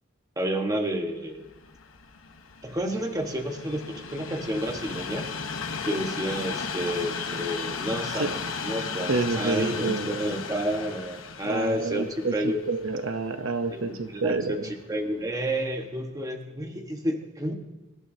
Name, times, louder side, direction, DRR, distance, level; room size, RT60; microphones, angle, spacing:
voice 1, 0.4-1.5 2.6-5.3 5.8-12.0 12.3-12.6 13.7-14.6 14.9-17.5, right 1 dB, 20° right, 3 dB, 1.3 m, -30 dB
Train, 1.3-14.5 15.2-15.3, left 5 dB, 80° left, 1.1 m, -36 dB
voice 2, 9.1-10.1 11.4-14.7, right 3 dB, 75° right, 8 dB, 0.8 m, -28 dB
25.0 x 12.0 x 2.8 m, 1.1 s
head